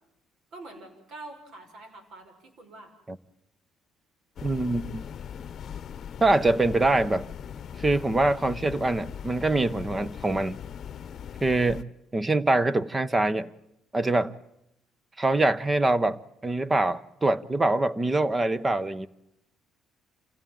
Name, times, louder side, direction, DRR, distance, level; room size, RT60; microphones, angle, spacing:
voice 1, 0.5-2.9, right 2 dB, 65° right, 6.0 m, -45 dB
sound 1, 4.4-11.8, left 8 dB, 50° left, 0.9 m, -39 dB
voice 2, 4.4-5.1 6.2-7.3 7.8-10.6 11.4-13.5 13.9-14.4 15.2-19.1, right 2 dB, 20° right, 0.8 m, -24 dB
27.5 x 16.5 x 9.2 m
cardioid pair, 110°, 0 cm